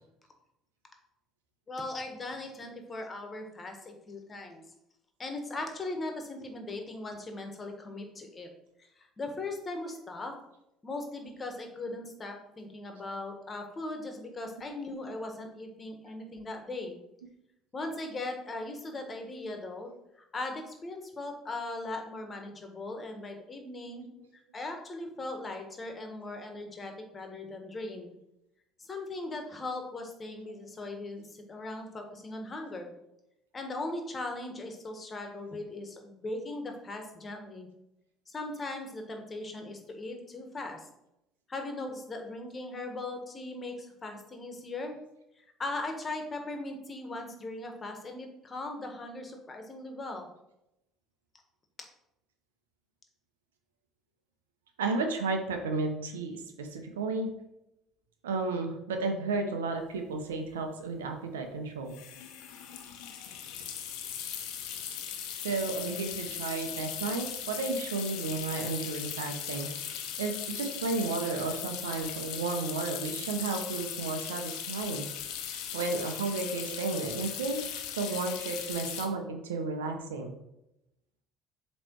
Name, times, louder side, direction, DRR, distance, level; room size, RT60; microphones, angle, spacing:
voice 1, 1.7-4.6 5.2-8.5 8.8-10.3 10.8-17.0 17.7-19.9 20.2-24.1 24.3-28.1 28.8-32.9 33.5-37.7 38.3-40.9 41.5-45.0 45.4-50.3, left 2 dB, 30° left, 4 dB, 1.6 m, -39 dB
voice 2, 54.8-57.3 58.2-62.0 65.4-75.0 75.5-77.6 77.9-80.3, right 3 dB, 85° right, 5 dB, 0.9 m, -33 dB
sound 1, 60.0-60.1 60.2-60.5 61.9-79.1, left 9 dB, 70° left, 0.9 m, -38 dB
7.6 x 3.3 x 4.6 m, 0.85 s
hypercardioid pair, 65°, 0 cm